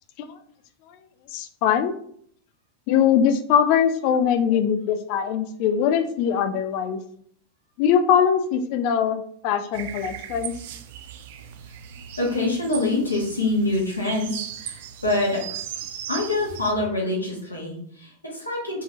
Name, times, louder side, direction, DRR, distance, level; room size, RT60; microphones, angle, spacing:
voice 1, 1.3-2.0 2.9-7.0 7.8-10.5, left 8 dB, 45° left, 8 dB, 0.4 m, -22 dB
sound 1, 9.7-16.7, right 9 dB, 50° right, 0.3 m, -37 dB
voice 2, 12.2-14.7 15.0-15.6 16.1-18.8, left 2 dB, 80° left, -2 dB, 1.1 m, -25 dB
3.7 x 2.8 x 2.7 m, 0.64 s
figure-of-eight pair, 90°, 0 cm